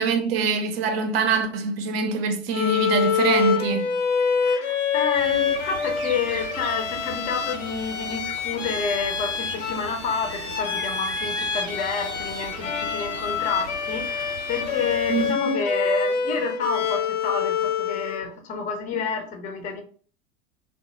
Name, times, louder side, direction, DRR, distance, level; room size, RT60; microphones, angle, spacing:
voice 1, 0.0-3.9 15.1-15.6, right 5 dB, 45° right, 0.6 m, -24 dB
Bowed string instrument, 2.5-18.3, left 7 dB, 60° left, 0.7 m, -26 dB
voice 2, 4.4-19.8, left 5 dB, 20° left, 0.6 m, -29 dB
sound 1, 5.1-15.3, right 5 dB, 85° right, 0.6 m, -40 dB
3.2 x 2.1 x 2.9 m
figure-of-eight pair, 90°, 41 cm